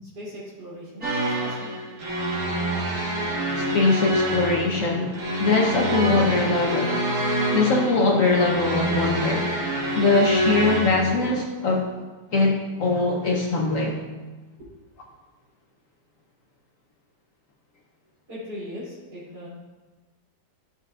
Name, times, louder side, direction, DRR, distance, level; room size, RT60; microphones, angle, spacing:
voice 1, 0.0-2.0 14.6-14.7 18.3-19.5, equal, 70° right, -10 dB, 3.5 m, -39 dB
sound 1, 1.0-11.0, right 1 dB, 50° right, 1.7 m, -26 dB
voice 2, 3.6-7.1 7.5-9.5 9.9-11.9 12.3-14.0, left 3 dB, 60° left, 1 dB, 1.0 m, -22 dB
12.0 x 6.9 x 2.4 m, 1.2 s
omnidirectional pair, 1.9 m